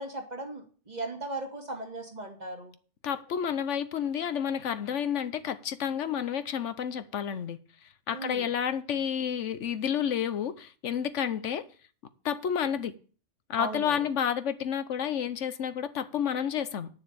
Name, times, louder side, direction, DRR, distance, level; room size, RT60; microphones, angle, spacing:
voice 1, 0.0-2.7 8.1-8.5 13.6-14.1, right 2 dB, 35° right, 2.2 m, -37 dB
voice 2, 3.0-7.6 8.1-11.6 12.2-12.9 13.5-16.9, left 8 dB, 85° left, 1.2 m, -30 dB
9.5 x 6.9 x 6.9 m
omnidirectional pair, 1.2 m